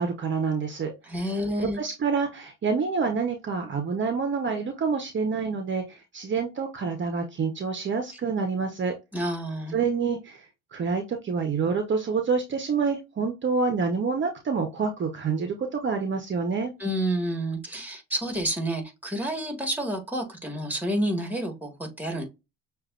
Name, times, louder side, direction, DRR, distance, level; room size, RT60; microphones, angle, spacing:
voice 1, 0.0-0.9 1.8-8.9 9.7-10.4 10.7-16.7, right 5 dB, 35° right, 1.0 m, -27 dB
voice 2, 1.1-1.8 9.1-9.8 16.8-22.3, right 1 dB, 5° right, 1.7 m, -29 dB
6.4 x 2.6 x 2.5 m
supercardioid pair, 85°, 31 cm